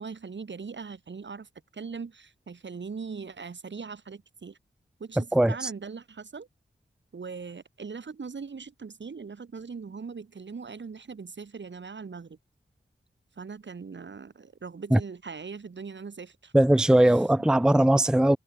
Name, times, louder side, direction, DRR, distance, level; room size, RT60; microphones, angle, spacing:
voice 1, 0.0-4.6 5.0-6.5 7.1-12.4 13.4-16.5 17.0-17.5, right 5 dB, 65° right, 1.7 m, -40 dB
voice 2, 16.5-18.4, right 1 dB, 5° right, 0.6 m, -19 dB
wide cardioid pair, 75°, 20 cm